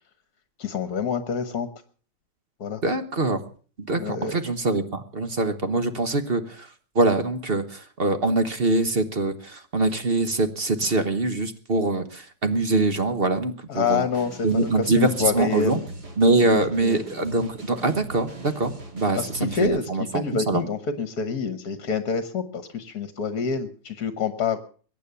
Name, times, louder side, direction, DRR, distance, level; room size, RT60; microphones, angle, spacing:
voice 1, 0.6-1.7 2.6-2.8 4.0-4.4 13.7-15.8 16.5-17.0 19.1-24.6, left 5 dB, 60° left, 11 dB, 1.6 m, -27 dB
voice 2, 2.8-3.4 3.8-6.7 6.9-14.1 14.4-15.8 16.2-20.6, right 2 dB, 35° right, 9 dB, 1.2 m, -24 dB
sound 1, 14.1-19.7, right 2 dB, 65° right, 3.9 m, -41 dB
22.5 x 9.3 x 6.8 m, 0.42 s
omnidirectional pair, 1.9 m